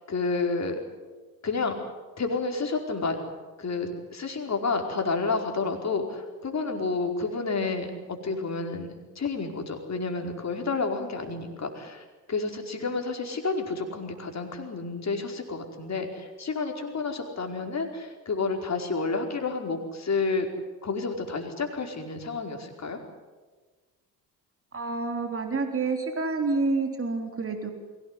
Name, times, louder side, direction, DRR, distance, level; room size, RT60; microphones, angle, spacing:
voice 1, 0.1-0.8 1.4-1.7 2.2-3.2 3.6-8.9 9.1-20.5 20.8-23.0, left 4 dB, 35° left, 3 dB, 4.8 m, -30 dB
voice 2, 24.7-27.7, right 3 dB, 25° right, 4 dB, 3.8 m, -28 dB
23.0 x 17.5 x 10.0 m, 1.3 s
hypercardioid pair, 55°, 49 cm